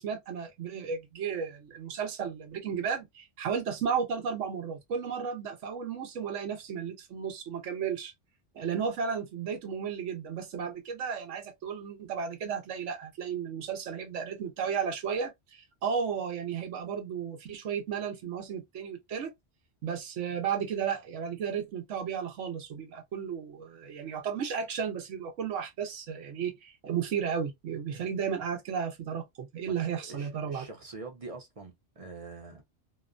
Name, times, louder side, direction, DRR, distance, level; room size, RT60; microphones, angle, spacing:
voice 1, 0.0-8.1 8.5-19.3 19.8-30.6, right 7 dB, 80° right, 1.1 m, -34 dB
voice 2, 29.7-32.6, right 3 dB, 40° right, 0.6 m, -45 dB
2.9 x 2.1 x 2.4 m
omnidirectional pair, 1.2 m